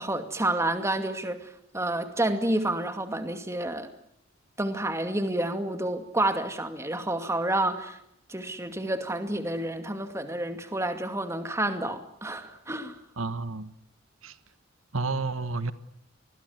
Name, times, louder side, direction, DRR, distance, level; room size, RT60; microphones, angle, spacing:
voice 1, 0.0-1.5 1.7-3.9 4.6-8.0 8.3-13.0, right 1 dB, 15° right, 7 dB, 2.4 m, -29 dB
voice 2, 13.2-13.7 14.2-14.3 14.9-15.7, right 3 dB, 85° right, 12 dB, 1.4 m, -30 dB
26.5 x 21.0 x 9.5 m, 0.73 s
head